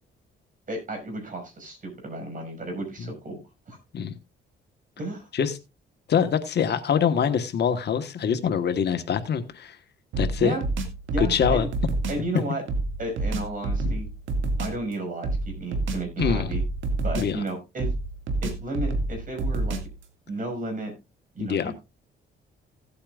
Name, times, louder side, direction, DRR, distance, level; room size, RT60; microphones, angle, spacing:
voice 1, 0.7-3.4 3.7-3.8 5.0-5.3 10.4-10.6 11.1-11.7 12.1-12.6 13.0-14.1 14.6-16.6 17.0-17.9 18.4-19.8 20.3-20.9 21.3-21.7, right 2 dB, 40° right, 4 dB, 5.9 m, -33 dB
voice 2, 6.1-9.8 10.2-10.5 11.2-11.7 13.8-13.9 16.2-16.5 17.2-17.4 21.4-21.7, left 7 dB, 60° left, 9 dB, 1.3 m, -24 dB
sound 1, 10.1-12.3 12.7-14.8 15.2-17.5 17.8-20.0, right 2 dB, 75° right, 2.0 m, -28 dB
16.5 x 8.5 x 2.4 m, 0.25 s
cardioid pair, 90°, 20 cm